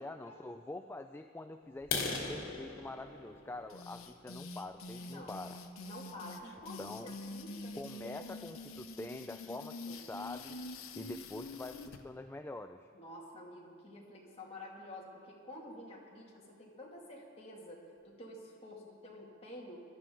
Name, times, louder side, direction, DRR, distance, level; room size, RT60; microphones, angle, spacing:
voice 1, 0.0-5.6 6.8-7.2 7.8-10.6 10.9-12.9, left 2 dB, 10° left, 7 dB, 0.3 m, -45 dB
sound 1, 1.8-5.5 6.1-6.3 6.7-6.8 7.3-7.4 7.7-7.8 8.3-8.4 8.6-9.1, left 4 dB, 70° left, 2.3 m, -40 dB
sound 2, 3.7-12.0, left 2 dB, 90° left, 0.9 m, -46 dB
voice 2, 5.0-5.4 5.8-8.4 9.4-9.6 9.8-10.0 12.9-19.8, left 1 dB, 30° left, -3 dB, 2.3 m, -50 dB
18.5 x 12.5 x 3.8 m, 2.3 s
head